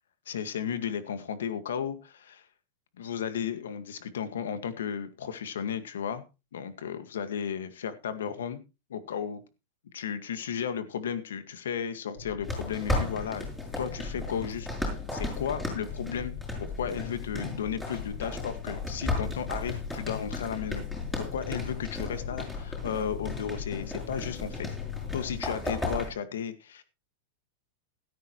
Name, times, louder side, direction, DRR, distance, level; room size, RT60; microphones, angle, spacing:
voice 1, 0.3-2.5 3.0-6.2 6.5-8.6 8.9-9.4 9.9-13.4 13.8-14.7 15.1-16.3 16.6-20.8 21.2-24.7 25.1-26.8, left 8 dB, 85° left, 11 dB, 1.9 m, -34 dB
sound 1, 12.2-25.4, left 7 dB, 60° left, 2.8 m, -40 dB
sound 2, 12.4-26.1, left 2 dB, 5° left, 6.5 m, -35 dB
15.0 x 13.0 x 3.1 m, 0.29 s
supercardioid pair, 135°, 0 cm